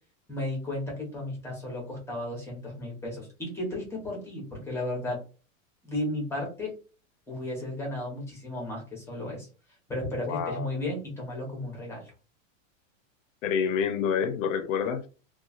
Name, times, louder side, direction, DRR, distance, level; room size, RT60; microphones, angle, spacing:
voice 1, 0.3-5.2 5.8-6.7 7.3-9.5 9.9-12.1, left 1 dB, 5° left, 0.9 m, -34 dB
voice 2, 10.3-10.7 13.4-15.1, left 7 dB, 80° left, 0.7 m, -28 dB
3.0 x 2.4 x 2.4 m
supercardioid pair, 160°, 39 cm